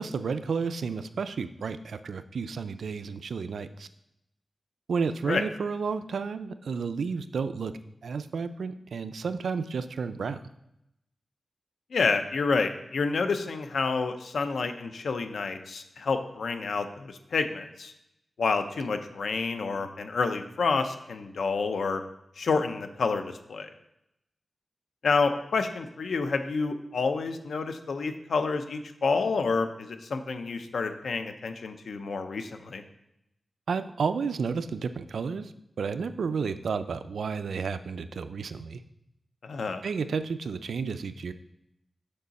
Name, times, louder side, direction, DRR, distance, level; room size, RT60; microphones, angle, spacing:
voice 1, 0.0-3.9 4.9-7.7 8.0-10.4 33.7-35.5 35.8-38.8 39.8-41.3, right 5 dB, 90° right, 11 dB, 0.4 m, -31 dB
voice 2, 11.9-17.9 18.4-22.0 22.4-23.7 25.0-32.8 39.4-39.8, left 4 dB, 85° left, 8 dB, 0.6 m, -29 dB
6.5 x 5.6 x 4.1 m, 0.83 s
wide cardioid pair, 80°, 0 cm